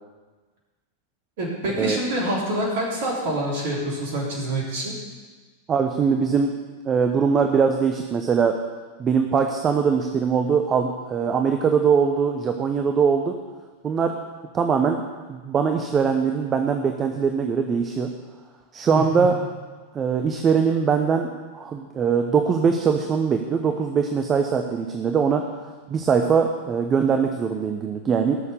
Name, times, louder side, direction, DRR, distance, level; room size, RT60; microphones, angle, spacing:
voice 1, 1.4-5.0 18.9-19.3, right 1 dB, 55° right, -3 dB, 3.4 m, -26 dB
voice 2, 5.7-6.5 6.8-8.6 9.0-13.3 13.8-14.1 14.5-15.0 15.3-18.1 18.7-19.3 19.9-21.3 21.5-25.4 25.9-28.4, right 6 dB, 25° right, 5 dB, 0.9 m, -21 dB
16.5 x 6.9 x 7.0 m, 1.3 s
figure-of-eight pair, 90°, 0 cm